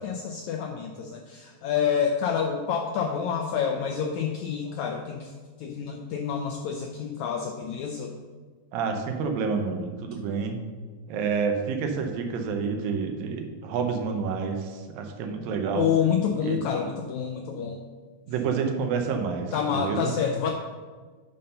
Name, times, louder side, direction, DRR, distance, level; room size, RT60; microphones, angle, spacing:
voice 1, 0.0-5.3 5.6-8.2 15.7-17.8 19.5-20.5, left 7 dB, 80° left, 2 dB, 1.6 m, -28 dB
voice 2, 8.7-10.6 11.1-15.9 16.4-16.6 18.3-20.1, right 5 dB, 80° right, 4 dB, 2.7 m, -29 dB
9.2 x 5.5 x 5.5 m, 1.5 s
omnidirectional pair, 4.0 m